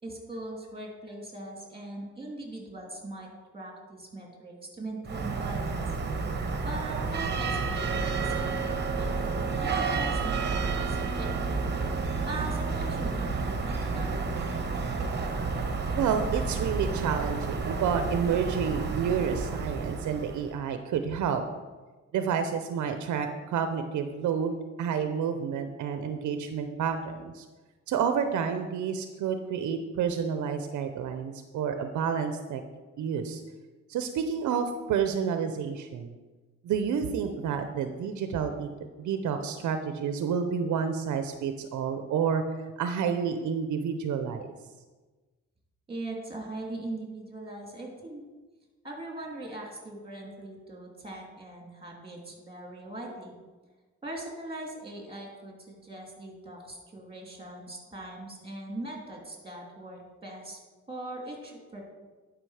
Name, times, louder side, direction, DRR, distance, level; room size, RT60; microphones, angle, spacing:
voice 1, 0.0-5.8 6.6-9.3 9.6-11.7 12.3-14.5 45.9-48.2 48.8-53.3 54.0-60.6 60.9-61.8, right 2 dB, 15° right, 0 dB, 2.7 m, -41 dB
sound 1, 5.0-20.5, right 4 dB, 35° right, 1.2 m, -30 dB
voice 2, 16.0-21.4 22.1-27.5 27.9-32.6 33.0-33.4 33.9-36.1 36.6-38.7 39.0-42.4 42.8-44.5, right 7 dB, 75° right, 8 dB, 0.7 m, -29 dB
11.0 x 5.1 x 4.9 m, 1.3 s
cardioid pair, 90°, 30 cm